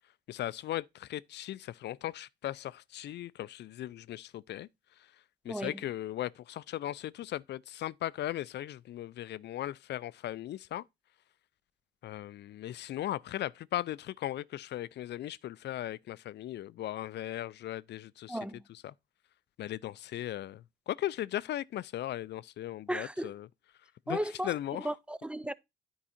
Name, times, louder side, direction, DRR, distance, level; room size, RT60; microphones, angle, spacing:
voice 1, 0.3-4.7 5.0-5.1 5.4-10.8 12.0-18.9 19.6-23.5 24.1-25.0, left 13 dB, 60° left, 0.4 m, -38 dB
voice 2, 18.3-18.6 22.9-23.3 24.1-24.5 24.8-25.5, equal, 5° right, 0.4 m, -35 dB
10.0 x 4.7 x 4.2 m
cardioid pair, 90°, 20 cm